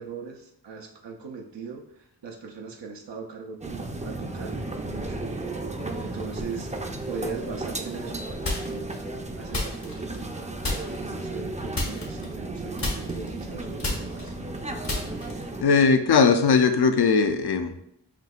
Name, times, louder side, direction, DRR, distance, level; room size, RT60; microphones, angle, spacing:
voice 1, 0.0-5.2 5.9-6.7 7.0-9.1 9.4-10.4 11.1-14.3, right 5 dB, 90° right, 1 dB, 0.6 m, -39 dB
sound 1, 3.6-15.6, right 2 dB, 20° right, 0.4 m, -34 dB
sound 2, 8.4-8.9 9.5-10.3 10.6-11.1 11.7-12.5 12.8-15.6, left 2 dB, 85° left, 1.5 m, -31 dB
voice 2, 15.6-17.8, left 5 dB, 70° left, 8 dB, 0.5 m, -19 dB
5.9 x 2.8 x 2.4 m, 0.76 s
wide cardioid pair, 55°, 41 cm